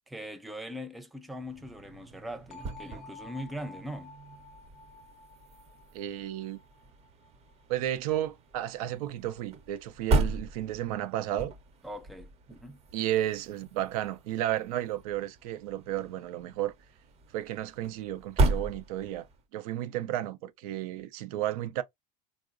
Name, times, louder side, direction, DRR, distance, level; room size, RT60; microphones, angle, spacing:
voice 1, 0.1-4.2 11.8-12.8, equal, ahead, 0.4 m, -41 dB
sound 1, 1.3-19.4, right 2 dB, 35° right, 0.7 m, -36 dB
sound 2, 2.5-8.3, left 3 dB, 65° left, 0.6 m, -52 dB
voice 2, 5.9-6.6 7.7-11.5 12.9-16.7 17.3-19.3 19.5-21.8, right 13 dB, 75° right, 0.5 m, -33 dB
3.7 x 2.0 x 2.4 m
supercardioid pair, 105°, 19 cm